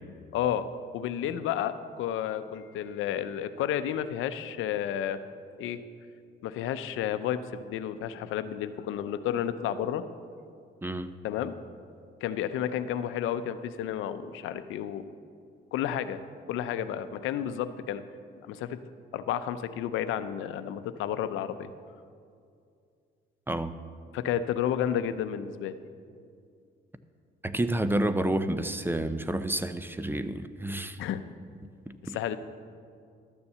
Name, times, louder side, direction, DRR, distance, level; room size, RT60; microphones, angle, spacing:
voice 1, 0.3-0.6 0.9-5.2 5.6-5.8 6.4-10.1 11.2-11.5 12.2-15.1 15.7-16.2 16.5-18.0 18.5-18.8 19.1-21.7 24.1-25.8 31.0-31.2 32.1-32.4, left 10 dB, 90° left, 11 dB, 0.6 m, -31 dB
voice 2, 10.8-11.1 23.5-23.8 27.4-31.0 31.9-32.2, right 1 dB, 10° right, 12 dB, 0.5 m, -29 dB
12.5 x 7.0 x 6.8 m, 2.3 s
cardioid pair, 90°, 20 cm